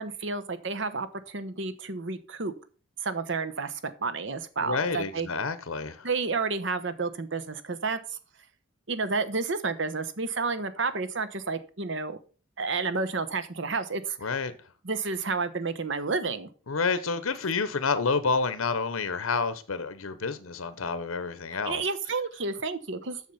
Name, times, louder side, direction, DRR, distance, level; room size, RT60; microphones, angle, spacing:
voice 1, 0.0-2.5 3.0-5.3 6.0-8.2 8.9-12.2 12.6-14.2 14.8-16.5 21.5-23.2, right 4 dB, 60° right, 1.0 m, -31 dB
voice 2, 4.6-6.1 14.2-14.5 16.7-21.8, left 4 dB, 85° left, 0.8 m, -29 dB
7.2 x 6.7 x 5.6 m
head